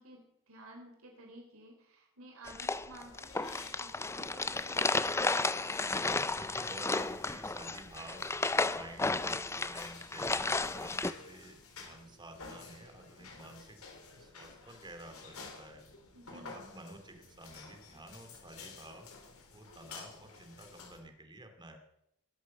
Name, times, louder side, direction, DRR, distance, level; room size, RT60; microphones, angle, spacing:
voice 1, 0.0-5.6 16.1-16.5, right 1 dB, 70° right, 2 dB, 3.5 m, -53 dB
sound 1, 2.5-11.1, left 3 dB, 10° left, 0.5 m, -33 dB
sound 2, 3.0-21.0, left 4 dB, 80° left, 4.1 m, -53 dB
voice 2, 6.3-13.8 14.2-15.8 16.3-19.1 19.5-21.8, right 1 dB, 20° right, 6 dB, 2.5 m, -51 dB
21.0 x 8.3 x 7.6 m, 0.79 s
head